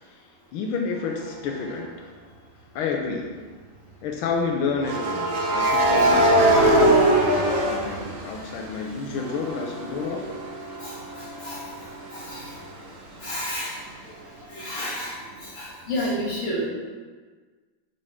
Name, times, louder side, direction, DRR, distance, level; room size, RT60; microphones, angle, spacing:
voice 1, 0.5-2.1 2.7-3.4 4.0-10.4, left 4 dB, 85° left, 1 dB, 1.5 m, -30 dB
sound 1, 1.5-1.7 4.8-8.7 9.1-12.7, right 1 dB, 60° right, 0.8 m, -22 dB
voice 2, 5.7-6.0 10.8-12.5 13.2-13.8 14.5-16.7, equal, 35° left, -8 dB, 2.5 m, -32 dB
11.0 x 4.0 x 3.6 m, 1.4 s
omnidirectional pair, 2.3 m